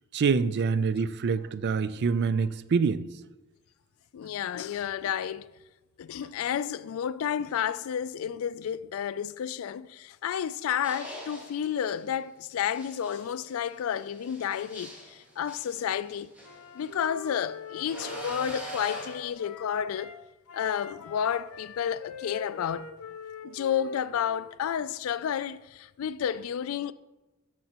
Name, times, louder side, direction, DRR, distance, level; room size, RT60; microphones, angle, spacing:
voice 1, 0.1-3.0, right 5 dB, 50° right, 0.4 m, -26 dB
voice 2, 4.1-5.5 6.0-16.3 16.7-20.1 20.5-22.9 23.4-26.9, left 8 dB, 70° left, 0.3 m, -31 dB
sound 1, 10.8-12.0 12.7-16.9 17.9-19.3, right 1 dB, 5° right, 1.8 m, -43 dB
Wind instrument woodwind instrument, 16.4-20.2 20.5-24.6, left 4 dB, 90° left, 0.8 m, -44 dB
12.0 x 6.1 x 2.9 m
head